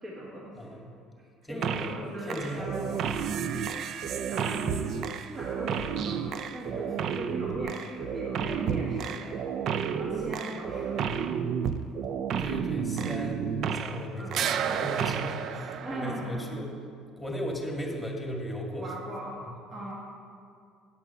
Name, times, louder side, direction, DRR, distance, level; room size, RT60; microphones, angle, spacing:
voice 1, 0.0-0.8 1.2-3.2 4.3-6.3 6.5-9.4 9.9-11.3 14.2-14.4 15.8-16.5 18.8-19.3 19.7-19.9, right 1 dB, 35° right, -4 dB, 1.7 m, -39 dB
voice 2, 0.5-0.9 1.4-2.0 2.2-2.7 6.7-6.9 8.7-8.9 12.4-13.4 13.7-16.7 17.2-18.9 19.5-19.6, equal, 5° left, 0 dB, 2.0 m, -36 dB
sound 1, 1.6-2.0 2.3-14.0 14.3-16.5, right 7 dB, 60° right, 0.4 m, -31 dB
9.4 x 6.1 x 5.6 m, 2.4 s
supercardioid pair, 75°, 0 cm